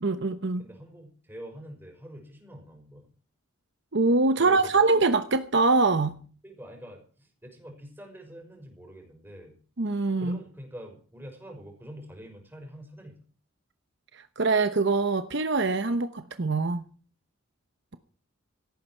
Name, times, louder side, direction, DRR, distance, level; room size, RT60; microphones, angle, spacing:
voice 1, 0.0-0.6 3.9-6.1 9.8-10.4 14.1-16.8, right 3 dB, 55° right, 10 dB, 1.0 m, -24 dB
voice 2, 0.6-3.1 4.4-5.0 6.4-9.6 10.2-13.2, equal, 10° right, 3 dB, 5.4 m, -45 dB
17.5 x 14.5 x 4.6 m, 0.42 s
head